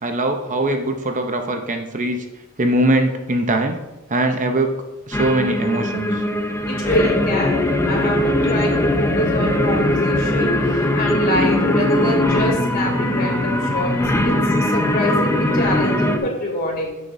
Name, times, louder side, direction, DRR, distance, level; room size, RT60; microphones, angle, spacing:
voice 1, 0.0-2.3 2.6-3.8 4.1-4.7 5.1-6.2, right 1 dB, 35° right, 5 dB, 0.7 m, -21 dB
sound 1, 5.1-16.2, left 1 dB, 15° left, 0.7 m, -20 dB
voice 2, 6.7-7.5 7.8-14.0 14.2-17.0, left 1 dB, 45° left, -1 dB, 2.8 m, -25 dB
15.0 x 6.5 x 2.7 m, 1.0 s
head